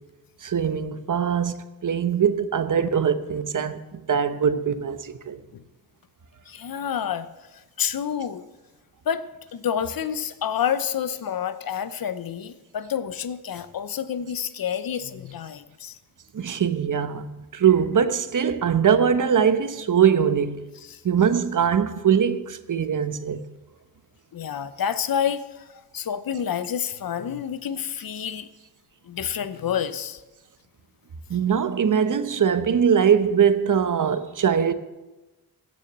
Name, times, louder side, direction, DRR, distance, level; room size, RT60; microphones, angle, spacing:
voice 1, 0.4-5.4 16.3-17.2 17.5-20.6 21.0-23.4 31.3-34.7, right 7 dB, 50° right, 1.0 m, -22 dB
voice 2, 6.5-8.4 9.1-9.2 9.5-16.0 20.9-21.0 24.3-25.6 25.9-28.5 29.0-30.2, left 8 dB, 60° left, 0.9 m, -29 dB
16.0 x 6.4 x 7.5 m
cardioid pair, 65°, 39 cm